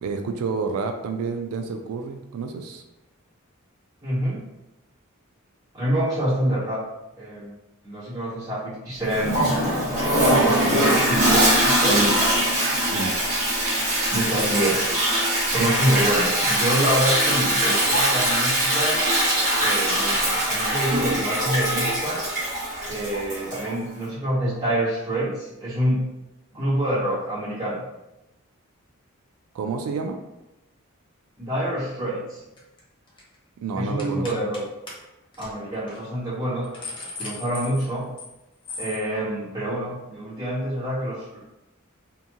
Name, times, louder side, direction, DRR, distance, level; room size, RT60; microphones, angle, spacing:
voice 1, 0.0-2.8 6.3-6.6 10.7-10.9 12.9-13.1 29.5-30.2 33.6-34.3, right 4 dB, 75° right, 8 dB, 0.3 m, -29 dB
voice 2, 4.0-4.4 5.7-6.8 7.2-7.5 7.8-9.4 10.4-12.2 14.1-14.9 15.4-19.0 19.6-22.2 22.9-26.1 26.5-27.8 31.4-32.4 33.7-34.6 35.4-36.7 37.2-38.1 38.8-41.4, right 1 dB, 20° right, -14 dB, 1.4 m, -26 dB
Toilet flush, 9.1-23.7, right 1 dB, 35° right, 1.2 m, -22 dB
sound 1, 32.6-32.8 33.1-33.3 34.0-34.6 34.9-35.0 35.3-35.5 35.9-36.0 36.4-38.3 38.6-39.0, left 3 dB, 25° left, 0.5 m, -37 dB
2.9 x 2.6 x 2.4 m, 0.96 s
head